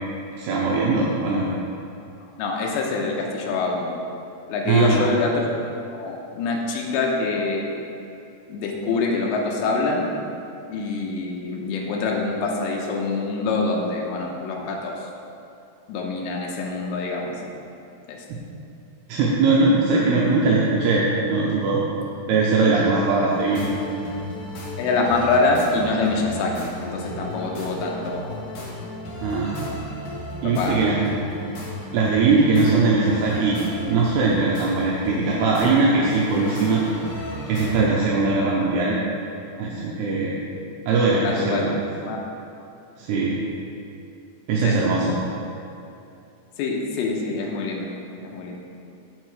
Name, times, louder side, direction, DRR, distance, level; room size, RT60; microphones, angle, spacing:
voice 1, 0.4-1.5 4.7-5.0 18.3-18.4 19.1-21.8 22.3-23.7 29.2-29.7 30.4-31.0 31.9-36.8 37.5-39.0 39.6-40.4 40.9-41.8 43.0-43.4 44.5-45.2, right 3 dB, 90° right, -4 dB, 2.3 m, -20 dB
voice 2, 2.4-3.9 4.5-5.5 5.9-7.6 8.5-10.1 10.7-15.1 15.9-17.3 18.1-18.2 24.8-28.3 30.4-30.9 41.2-41.6 42.0-42.2 44.6-44.7 46.6-47.9 48.2-48.6, left 3 dB, 75° left, -1 dB, 2.8 m, -25 dB
sound 1, 23.3-37.9, left 1 dB, 60° left, 2.1 m, -34 dB
8.7 x 6.7 x 4.8 m, 2.7 s
omnidirectional pair, 5.7 m